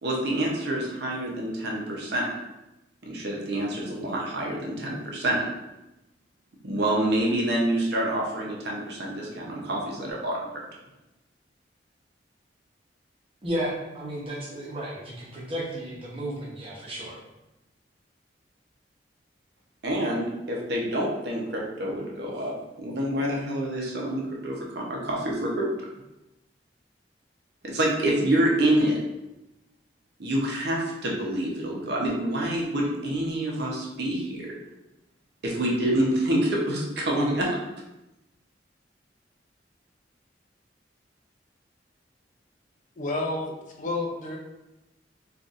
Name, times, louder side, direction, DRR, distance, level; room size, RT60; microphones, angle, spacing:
voice 1, 0.0-2.3 3.0-5.5 6.6-10.5 19.8-22.5 22.8-25.6 27.6-29.0 30.2-34.5 35.4-37.5, right 1 dB, 65° right, -2 dB, 0.7 m, -27 dB
voice 2, 13.4-17.2, right 1 dB, 30° right, -5 dB, 0.9 m, -33 dB
voice 3, 43.0-44.4, left 2 dB, 45° left, 1 dB, 0.5 m, -30 dB
4.0 x 2.5 x 2.4 m, 0.96 s
head